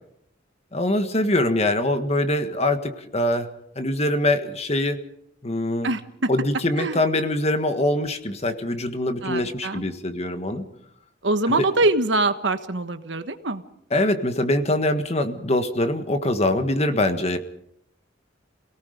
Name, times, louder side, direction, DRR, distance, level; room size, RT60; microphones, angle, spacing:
voice 1, 0.7-3.5 3.7-5.0 5.4-5.9 6.3-10.6 11.5-11.6 13.9-17.4, left 1 dB, 35° left, 8 dB, 1.6 m, -23 dB
voice 2, 5.8-6.3 6.8-7.0 9.2-9.8 11.2-13.6, right 2 dB, 70° right, 9 dB, 1.4 m, -24 dB
28.0 x 18.0 x 5.2 m, 0.74 s
head